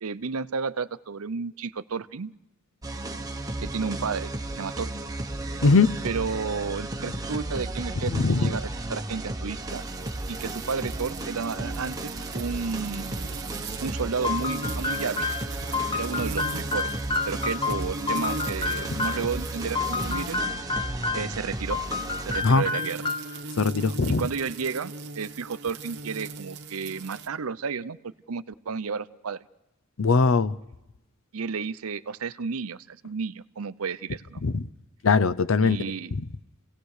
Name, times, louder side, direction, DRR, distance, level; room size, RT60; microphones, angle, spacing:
voice 1, 0.0-2.3 3.6-4.9 6.0-9.8 10.3-13.1 13.8-15.4 15.9-16.9 17.2-20.4 21.1-21.8 22.2-23.1 24.2-29.4 31.3-34.4 35.6-36.1, right 5 dB, 85° right, 0.7 m, -32 dB
sound 1, 2.8-22.4, right 2 dB, 15° right, 1.2 m, -34 dB
voice 2, 5.6-5.9 8.1-8.5 22.4-22.6 23.6-24.2 30.0-30.6 34.4-34.6 35.0-35.8 36.1-36.2, left 4 dB, 65° left, 0.7 m, -20 dB
sound 2, 9.7-20.6 21.6-27.3, right 4 dB, 55° right, 1.1 m, -40 dB
sound 3, 14.2-19.3 19.7-21.4 21.7-23.4, left 4 dB, 25° left, 0.8 m, -30 dB
29.5 x 18.0 x 6.6 m
head